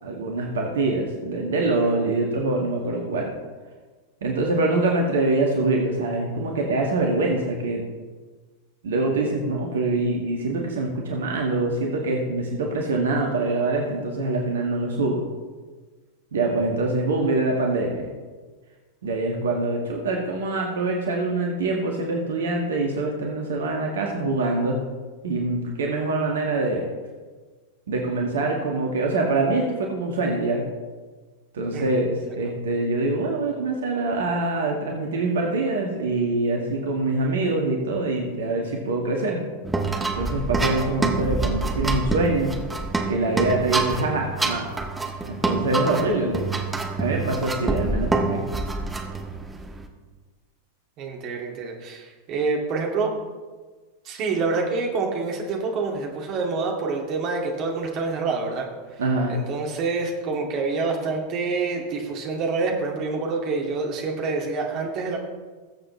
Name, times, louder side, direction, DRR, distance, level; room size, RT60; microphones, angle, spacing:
voice 1, 0.0-3.3 4.2-7.8 8.8-15.2 16.3-18.1 19.0-24.8 25.2-26.9 27.9-30.6 31.5-39.4 40.1-42.6 43.1-44.6 45.2-46.5 47.0-48.4 59.0-59.3, right 2 dB, 60° right, 0 dB, 1.8 m, -24 dB
voice 2, 31.7-32.0 51.0-53.1 54.1-58.7 59.3-65.2, right 4 dB, 40° right, 0 dB, 2.2 m, -27 dB
sound 1, 39.6-49.9, right 3 dB, 10° right, 1.2 m, -27 dB
20.0 x 7.7 x 3.2 m, 1.4 s
figure-of-eight pair, 90°, 0 cm